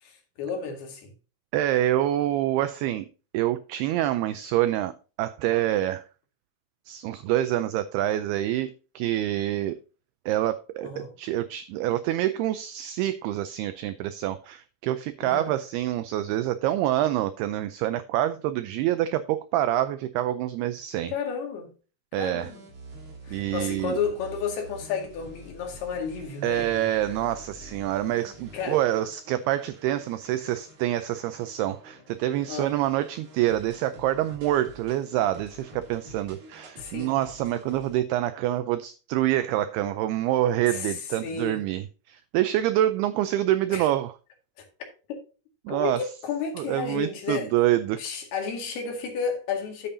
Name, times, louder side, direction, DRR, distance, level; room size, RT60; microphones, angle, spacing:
voice 1, 0.0-1.1 10.8-11.1 15.2-15.5 21.1-21.7 22.2-22.6 23.2-26.7 28.5-28.8 32.5-32.7 36.8-37.1 40.7-41.6 43.7-43.9 45.1-45.2 45.7-47.5 48.0-49.9, left 6 dB, 65° left, 3.8 m, -32 dB
voice 2, 1.5-3.1 3.3-4.9 5.2-6.0 6.9-9.8 10.3-10.9 11.2-21.1 22.1-22.5 23.3-24.0 26.4-44.1 45.7-46.1 46.6-48.0, right 13 dB, 85° right, 2.3 m, -26 dB
sound 1, 22.4-38.0, right 1 dB, 45° right, 3.9 m, -47 dB
11.0 x 8.5 x 2.7 m
omnidirectional pair, 5.2 m